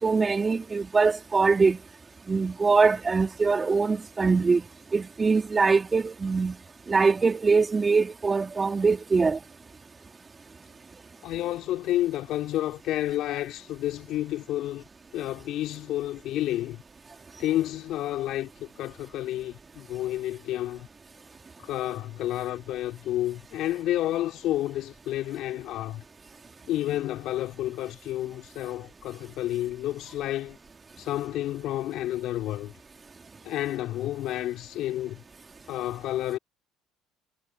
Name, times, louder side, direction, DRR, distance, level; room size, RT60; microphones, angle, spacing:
voice 1, 0.0-1.8 2.3-4.6 4.9-6.5 6.9-9.4, right 4 dB, 25° right, 2.4 m, -23 dB
voice 2, 11.2-14.8 15.1-16.8 17.4-20.9 21.6-26.0 26.7-30.6 31.0-32.7 33.4-35.2 35.7-36.4, left 14 dB, 65° left, 3.1 m, -30 dB
hypercardioid pair, 70°, 0 cm